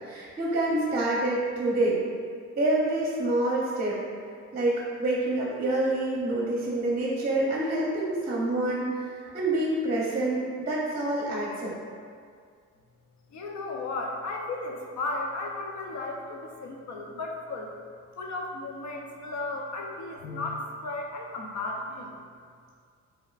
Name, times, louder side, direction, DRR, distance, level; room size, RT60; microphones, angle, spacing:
voice 1, 0.0-2.1 2.6-4.0 4.5-9.1 9.3-11.7, right 2 dB, 30° right, -4 dB, 0.7 m, -27 dB
voice 2, 13.3-17.7 18.2-22.1, left 2 dB, 65° left, 0 dB, 0.7 m, -34 dB
5.2 x 3.0 x 2.4 m, 2.1 s
cardioid pair, 90°, 30 cm